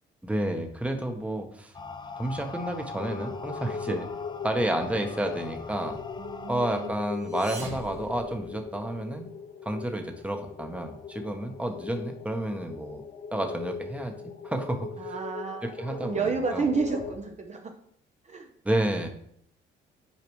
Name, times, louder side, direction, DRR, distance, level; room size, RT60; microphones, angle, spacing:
voice 1, 0.2-1.7 2.2-4.1 4.4-6.0 6.5-9.3 9.6-13.0 13.3-14.1 14.4-14.9 15.6-16.2 16.5-16.6 18.6-19.1, right 1 dB, 5° right, 4 dB, 1.0 m, -30 dB
sound 1, 1.7-6.9, left 4 dB, 20° left, 0.5 m, -41 dB
sound 2, 2.9-17.1, left 5 dB, 85° left, 1.3 m, -40 dB
voice 2, 6.2-6.9 15.0-17.7 18.2-18.5, right 4 dB, 35° right, 3 dB, 0.8 m, -31 dB
sound 3, 7.1-9.0, right 2 dB, 75° right, 2.1 m, -43 dB
8.6 x 4.8 x 3.1 m, 0.66 s
cardioid pair, 90°, 20 cm